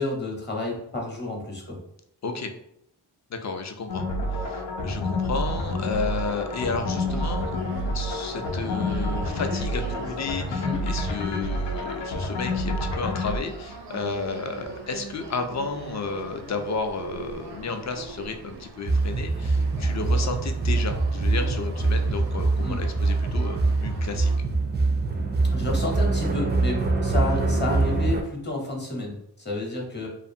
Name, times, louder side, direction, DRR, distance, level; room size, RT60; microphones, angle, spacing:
voice 1, 0.0-1.8 10.5-10.8 22.6-22.8 25.5-30.1, left 2 dB, 25° left, 0 dB, 0.8 m, -30 dB
voice 2, 3.3-7.6 7.9-24.3, left 4 dB, 40° left, 6 dB, 0.4 m, -32 dB
sound 1, 3.9-13.4, left 1 dB, 80° left, 0.7 m, -28 dB
sound 2, 5.4-24.4, right 2 dB, 85° right, 0.6 m, -42 dB
sound 3, 18.9-28.2, right 3 dB, 25° right, 0.3 m, -24 dB
2.4 x 2.4 x 2.6 m, 0.75 s
cardioid pair, 65°, 42 cm